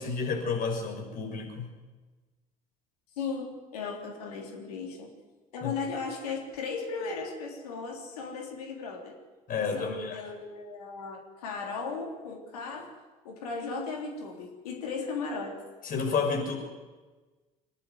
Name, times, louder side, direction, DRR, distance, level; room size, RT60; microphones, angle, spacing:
voice 1, 0.0-1.7 5.6-5.7 9.5-10.2 15.8-16.5, left 5 dB, 45° left, 1 dB, 6.2 m, -30 dB
voice 2, 3.2-5.1 5.5-9.2 9.6-12.9 13.2-15.6, left 4 dB, 75° left, 0 dB, 3.5 m, -36 dB
24.5 x 11.5 x 9.4 m, 1.3 s
hypercardioid pair, 60°, 19 cm